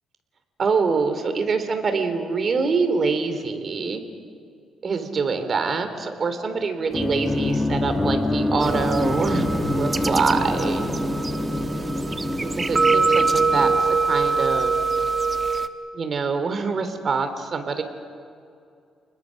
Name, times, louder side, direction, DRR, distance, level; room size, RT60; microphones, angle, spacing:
voice 1, 0.6-4.0 4.8-10.9 12.4-13.7 14.0-14.7 15.9-17.8, right 4 dB, 45° right, 8 dB, 3.0 m, -25 dB
sound 1, 6.9-14.5, left 1 dB, 15° left, 1.5 m, -26 dB
sound 2, 8.6-15.7, right 4 dB, 25° right, 1.2 m, -24 dB
30.0 x 21.0 x 6.4 m, 2.4 s
cardioid pair, 90°, 0 cm